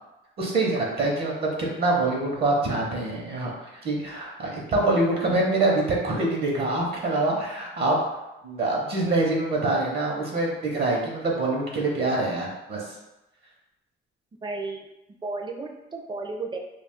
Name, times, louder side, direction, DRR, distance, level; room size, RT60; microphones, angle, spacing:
voice 1, 0.4-8.0 8.4-13.0, right 2 dB, 55° right, -2 dB, 0.8 m, -25 dB
voice 2, 14.4-14.9 15.2-16.6, right 3 dB, 25° right, 2 dB, 0.5 m, -33 dB
2.3 x 2.3 x 3.6 m, 0.97 s
cardioid pair, 90°, 20 cm